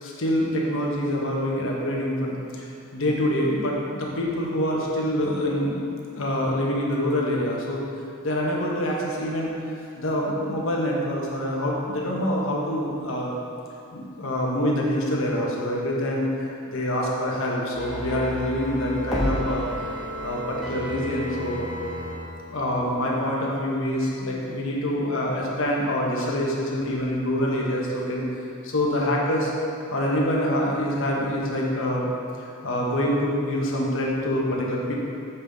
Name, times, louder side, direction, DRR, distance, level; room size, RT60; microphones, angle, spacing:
voice 1, 0.0-2.7 2.9-5.9 6.2-7.8 8.2-9.6 10.0-13.3 13.9-19.7 20.2-21.7 22.5-28.3 28.6-29.5 29.9-32.1 32.4-34.9, left 1 dB, 65° left, -3 dB, 1.1 m, -26 dB
sound 1, 17.7-22.2 22.5-22.6, equal, ahead, 1.2 m, -31 dB
7.0 x 5.5 x 3.5 m, 2.5 s
head